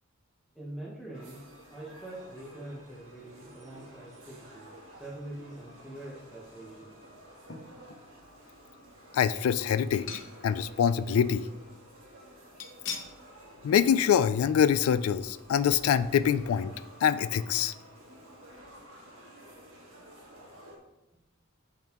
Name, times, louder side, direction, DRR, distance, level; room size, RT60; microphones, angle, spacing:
voice 1, 0.5-1.4 1.7-7.0, right 1 dB, ahead, -6 dB, 1.0 m, -44 dB
sound 1, 1.1-20.8, equal, 80° right, 1.5 m, -52 dB
sound 2, 7.5-8.1 8.6-8.7 9.9-10.7 11.0-11.1 12.6-13.2 13.6-13.8 14.1-14.2, left 6 dB, 60° left, 0.8 m, -41 dB
voice 2, 9.1-10.1 10.4-11.4 13.6-16.7 17.0-17.7, left 8 dB, 90° left, 14 dB, 0.3 m, -25 dB
10.5 x 3.9 x 2.9 m, 0.99 s
head